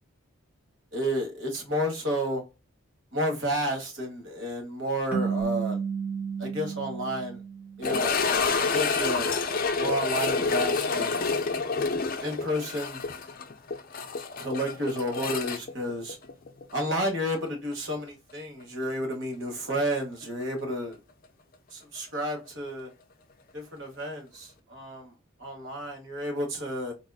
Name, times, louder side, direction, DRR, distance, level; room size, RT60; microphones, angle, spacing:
voice 1, 0.9-2.4 3.1-5.8 6.4-7.4 7.8-8.2 8.6-9.3 9.7-11.2 12.2-13.0 14.4-16.2 16.7-21.0 21.7-22.9 23.5-25.1 25.4-26.9, equal, 60° right, 1.3 m, -31 dB
sound 1, 5.1-8.3, right 6 dB, 5° right, 0.7 m, -32 dB
sound 2, 7.8-16.7 17.0-17.1 17.7-17.8 20.4-20.5, left 4 dB, 45° left, 0.4 m, -28 dB
4.0 x 2.4 x 2.3 m
head